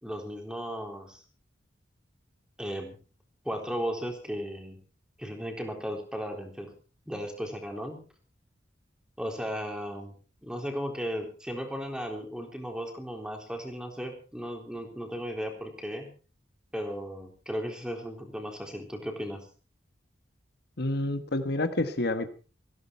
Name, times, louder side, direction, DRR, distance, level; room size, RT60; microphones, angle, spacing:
voice 1, 0.0-1.2 2.6-3.0 3.4-4.8 5.2-6.7 7.1-8.0 9.2-10.2 10.4-16.1 16.7-19.5, equal, 5° right, 3 dB, 3.8 m, -35 dB
voice 2, 20.8-22.3, left 2 dB, 60° left, 9 dB, 1.5 m, -28 dB
18.0 x 16.0 x 4.6 m, 0.38 s
head